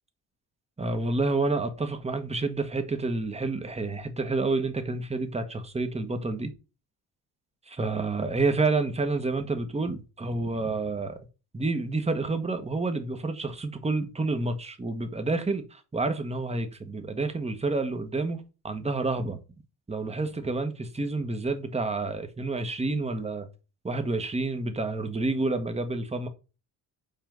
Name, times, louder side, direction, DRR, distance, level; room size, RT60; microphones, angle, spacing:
voice 1, 0.8-6.5 7.7-11.2 11.5-19.4 19.9-23.4 23.8-26.3, right 3 dB, 15° right, 1.3 m, -29 dB
5.8 x 4.4 x 5.1 m
cardioid pair, 90°, 38 cm